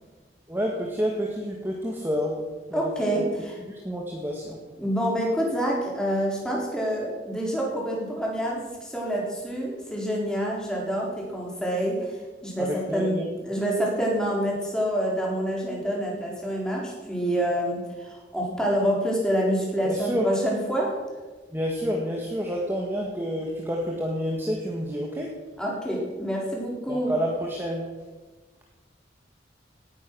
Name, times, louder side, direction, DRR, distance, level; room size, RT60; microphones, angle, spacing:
voice 1, 0.5-2.4 2.7-2.9 3.7-4.6 12.6-13.3 19.8-20.3 21.5-25.3 26.9-27.9, equal, 10° right, -1 dB, 1.7 m, -29 dB
voice 2, 2.7-3.6 4.8-12.2 12.4-20.9 25.6-27.1, equal, 5° left, -3 dB, 4.1 m, -27 dB
18.0 x 10.0 x 6.3 m, 1.3 s
head